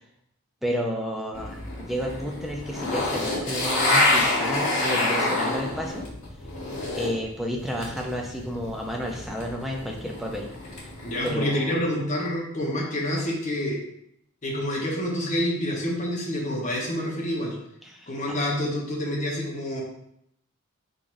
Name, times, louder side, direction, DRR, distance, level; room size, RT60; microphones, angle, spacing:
voice 1, 0.6-6.1 7.0-10.5 11.2-11.8 12.6-12.7 17.8-18.4, equal, ahead, 0 dB, 0.5 m, -31 dB
sound 1, 1.3-7.2 7.5-11.3, left 2 dB, 80° left, 1.7 m, -28 dB
voice 2, 11.0-13.8 14.4-17.6 18.1-19.8, left 1 dB, 35° left, -3 dB, 1.0 m, -27 dB
4.3 x 3.9 x 2.6 m, 0.75 s
head